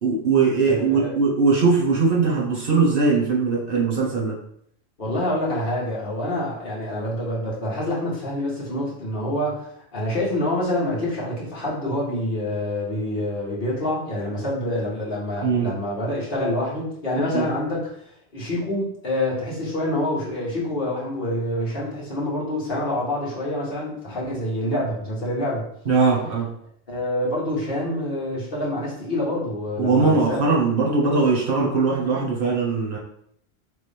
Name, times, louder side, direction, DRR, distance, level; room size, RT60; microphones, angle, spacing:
voice 1, 0.0-4.3 15.4-15.7 17.3-17.5 25.9-26.5 29.8-33.0, right 4 dB, 55° right, -5 dB, 1.7 m, -20 dB
voice 2, 0.7-1.1 5.0-18.1 18.3-25.7 26.9-30.6, left 1 dB, 50° left, -6 dB, 1.8 m, -26 dB
4.0 x 3.5 x 3.5 m, 0.69 s
omnidirectional pair, 1.1 m